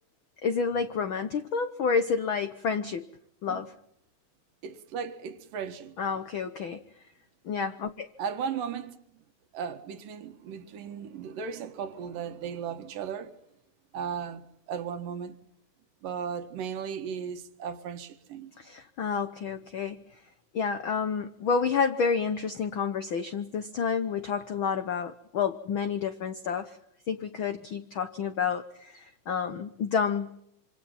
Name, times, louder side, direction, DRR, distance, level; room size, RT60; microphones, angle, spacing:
voice 1, 0.4-3.1 3.4-3.7 6.0-6.8 7.4-8.1 18.6-20.0 20.5-26.8 27.1-30.3, left 6 dB, 70° left, 1.2 m, -29 dB
voice 2, 4.6-6.0 8.2-9.0 9.5-13.3 13.9-14.4 14.7-15.4 16.0-18.5, right 7 dB, 85° right, 3.2 m, -36 dB
26.5 x 26.0 x 5.8 m
omnidirectional pair, 3.8 m